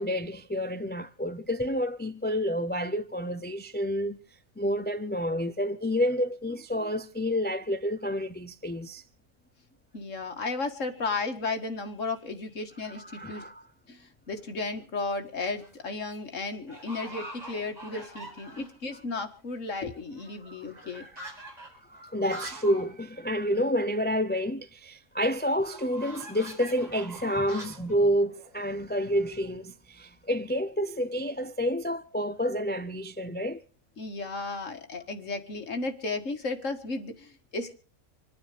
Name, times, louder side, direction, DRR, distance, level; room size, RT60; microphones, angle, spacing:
voice 1, 0.0-4.2 4.6-9.0 12.8-13.6 18.5-18.6 20.4-21.1 21.9-33.6, equal, 15° left, 0.4 m, -29 dB
voice 2, 9.9-13.5 13.9-21.0 34.0-37.7, left 3 dB, 70° left, 2.2 m, -34 dB
sound 1, 14.4-14.8 15.4-15.8 16.1-16.2 16.7-18.9 19.2-19.3 19.5-22.9 23.2-23.3 23.6-23.7 25.6-29.3, right 1 dB, 30° right, 4.9 m, -45 dB
27.0 x 9.5 x 5.1 m
omnidirectional pair, 1.4 m